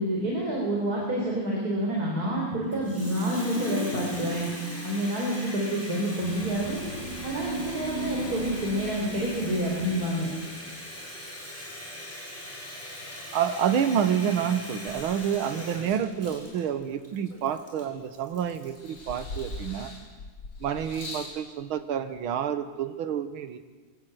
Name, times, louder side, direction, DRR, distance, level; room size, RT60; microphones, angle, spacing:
voice 1, 0.0-4.5 4.8-6.8 7.2-10.3, right 1 dB, 45° right, -2 dB, 4.5 m, -28 dB
Water tap faucet, 2.7-19.6, left 1 dB, 5° left, 5.2 m, -40 dB
sound 1, 6.1-10.7, right 3 dB, 25° right, 6.7 m, -37 dB
voice 2, 13.3-19.9 20.6-23.6, right 8 dB, 75° right, 10 dB, 2.0 m, -28 dB
sound 2, 14.9-16.7 17.3-18.3 18.8-21.4 22.3-22.4, left 2 dB, 70° left, 4.3 m, -41 dB
23.5 x 17.0 x 7.9 m, 1.4 s
omnidirectional pair, 2.3 m